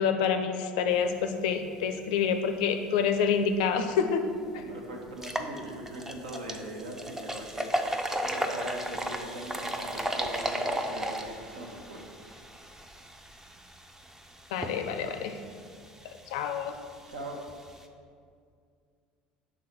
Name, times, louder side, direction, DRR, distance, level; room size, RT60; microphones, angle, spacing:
voice 1, 0.0-4.3 4.5-4.6 14.5-15.4 16.3-16.7, left 6 dB, 60° left, 8 dB, 0.5 m, -27 dB
sound 1, 3.8-3.9 4.4-4.5 5.1-17.8, right 1 dB, 10° right, 0.5 m, -36 dB
voice 2, 4.6-7.7 8.2-12.0 17.1-17.4, right 1 dB, 70° right, 0 dB, 1.0 m, -40 dB
6.2 x 3.7 x 5.7 m, 2.2 s
figure-of-eight pair, 65°, 5 cm